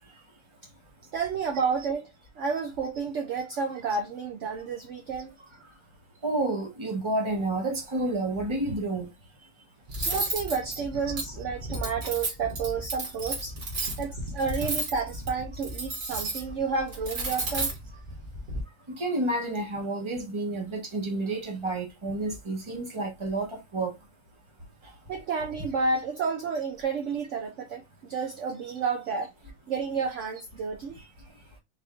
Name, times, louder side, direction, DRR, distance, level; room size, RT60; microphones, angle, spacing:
voice 1, 1.1-5.3 10.1-13.5 14.0-17.7 25.1-29.3 29.7-30.9, right 5 dB, 65° right, 0.7 m, -31 dB
voice 2, 6.2-9.1 18.9-23.9, right 2 dB, 20° right, 1.0 m, -30 dB
Cutlery silverware, 9.9-18.6, right 2 dB, 50° right, 1.8 m, -33 dB
4.4 x 2.6 x 3.5 m
omnidirectional pair, 2.0 m